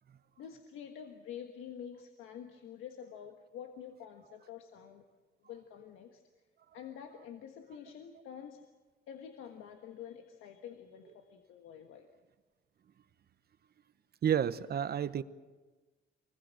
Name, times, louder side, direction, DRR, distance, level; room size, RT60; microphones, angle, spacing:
voice 1, 0.4-5.0 5.4-6.2 6.7-8.7 9.1-12.1, left 8 dB, 90° left, 5 dB, 1.5 m, -48 dB
voice 2, 14.2-15.2, right 9 dB, 55° right, 14 dB, 1.0 m, -30 dB
24.0 x 21.0 x 7.7 m, 1.3 s
cardioid pair, 90°, 20 cm